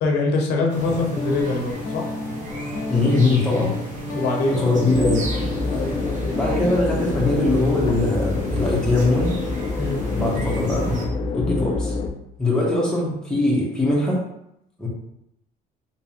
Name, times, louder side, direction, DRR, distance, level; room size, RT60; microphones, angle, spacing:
voice 1, 0.0-2.1 4.1-4.6 5.7-6.4 9.8-10.0, left 3 dB, 85° left, 1 dB, 0.8 m, -24 dB
sound 1, 0.7-11.1, right 1 dB, 50° right, 1.1 m, -34 dB
Guitar, 1.1-6.8, left 1 dB, 50° left, 1.0 m, -31 dB
voice 2, 2.9-3.7 4.5-5.2 5.7-6.0 6.3-9.3 10.1-10.9 11.3-11.9 12.4-14.2 14.8-14.9, left 2 dB, 5° left, -6 dB, 1.3 m, -21 dB
sound 2, 4.9-12.1, left 3 dB, 30° left, 0.4 m, -27 dB
3.3 x 3.1 x 2.9 m, 0.79 s
cardioid pair, 110°, 17 cm